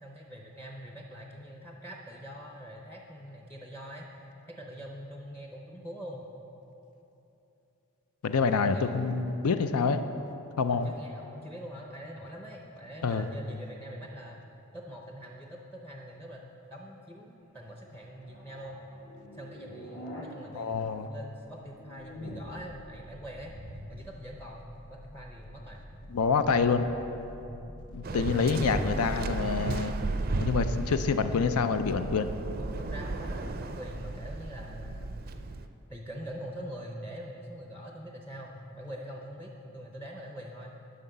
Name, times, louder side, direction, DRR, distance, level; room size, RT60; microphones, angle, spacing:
voice 1, 0.0-4.1 4.5-6.3 8.6-8.9 10.7-14.4 14.7-16.4 16.7-18.8 19.3-23.5 23.9-25.8 27.4-27.7 28.1-29.0 32.6-35.2 35.9-40.8, equal, 10° left, 0 dB, 0.6 m, -44 dB
voice 2, 8.2-10.0 10.6-10.9 13.0-13.3 20.5-21.1 26.1-26.9 27.9-29.9 30.3-32.3, left 5 dB, 90° left, 10 dB, 0.5 m, -27 dB
sound 1, 17.4-20.2 20.5-30.2, equal, 60° left, 1.4 m, -46 dB
Waves surf, 28.0-35.7, right 2 dB, 40° right, 0.4 m, -34 dB
11.0 x 5.6 x 6.8 m, 3.0 s
head